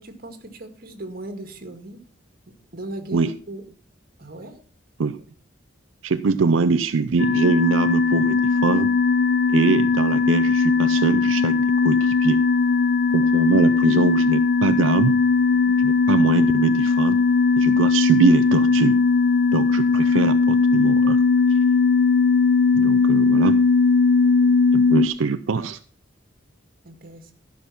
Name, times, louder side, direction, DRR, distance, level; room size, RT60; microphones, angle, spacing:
voice 1, 0.0-2.0 2.5-3.6 4.2-4.6 15.5-15.8 24.2-24.6 26.8-27.3, right 1 dB, 50° right, 6 dB, 1.9 m, -38 dB
voice 2, 6.0-8.9 9.5-12.4 13.1-15.2 15.8-17.2 17.6-19.0 19.5-21.2 22.7-23.6 24.7-25.8, right 4 dB, 80° right, 10 dB, 0.5 m, -22 dB
sound 1, 7.2-25.1, left 4 dB, 55° left, 0.5 m, -18 dB
13.5 x 5.9 x 5.9 m, 0.42 s
head